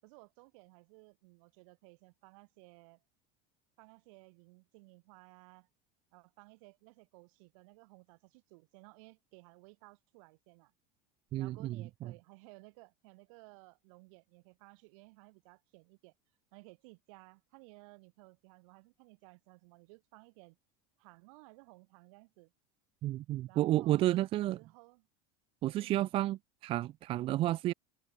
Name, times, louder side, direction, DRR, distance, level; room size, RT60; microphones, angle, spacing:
voice 1, 0.0-3.0 3.8-5.7 6.1-10.7 11.4-16.1 16.5-20.6 21.0-22.5 23.5-24.0 24.5-25.1 25.7-26.0, right 28 dB, 70° right, 6.2 m, -58 dB
voice 2, 11.3-12.1 23.0-24.6 25.6-27.7, right 15 dB, 30° right, 0.6 m, -31 dB
cardioid pair, 175°, 18 cm